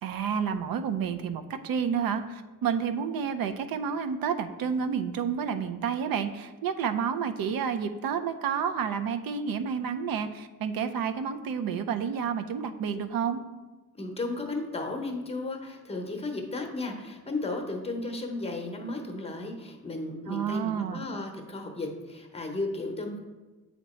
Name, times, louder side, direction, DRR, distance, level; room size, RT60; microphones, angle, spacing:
voice 1, 0.0-13.4 20.3-21.1, right 7 dB, 75° right, 9 dB, 0.5 m, -30 dB
voice 2, 13.9-23.2, left 2 dB, 15° left, 3 dB, 0.8 m, -34 dB
8.1 x 2.9 x 4.2 m, 1.2 s
cardioid pair, 115°, 36 cm